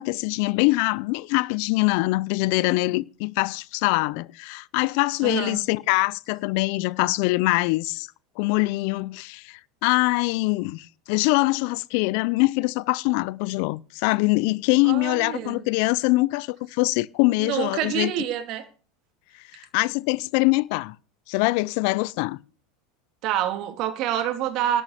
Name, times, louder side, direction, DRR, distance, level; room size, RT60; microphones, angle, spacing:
voice 1, 0.0-8.1 8.4-18.1 19.5-21.0 21.3-22.4, left 23 dB, 65° left, 0.6 m, -23 dB
voice 2, 5.2-5.6 14.8-15.6 17.4-18.7 23.2-24.8, right 11 dB, 55° right, 2.7 m, -27 dB
12.0 x 9.9 x 6.7 m
hypercardioid pair, 100°, 0 cm